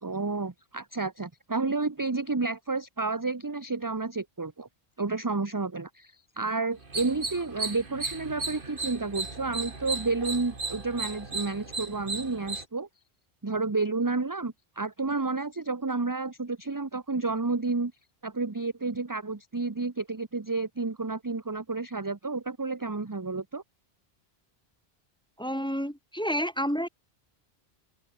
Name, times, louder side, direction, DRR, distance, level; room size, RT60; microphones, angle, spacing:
voice 1, 0.0-4.7 5.0-12.9 13.4-17.9 18.2-23.6, right 3 dB, 20° right, 0.9 m, -31 dB
sound 1, 6.8-12.6, right 3 dB, 55° right, 2.5 m, -35 dB
voice 2, 25.4-26.9, equal, 5° left, 2.0 m, -29 dB
open air
omnidirectional pair, 1.1 m